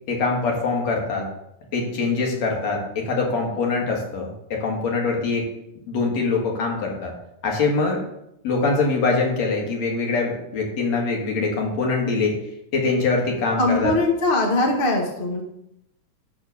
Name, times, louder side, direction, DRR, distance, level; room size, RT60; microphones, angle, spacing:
voice 1, 0.1-1.3 1.7-5.5 5.9-7.1 7.4-8.0 8.4-12.4 12.7-13.9, left 3 dB, 60° left, 0 dB, 3.0 m, -23 dB
voice 2, 13.6-15.4, left 2 dB, 30° left, 1 dB, 1.0 m, -21 dB
11.5 x 4.3 x 6.9 m, 0.82 s
omnidirectional pair, 3.5 m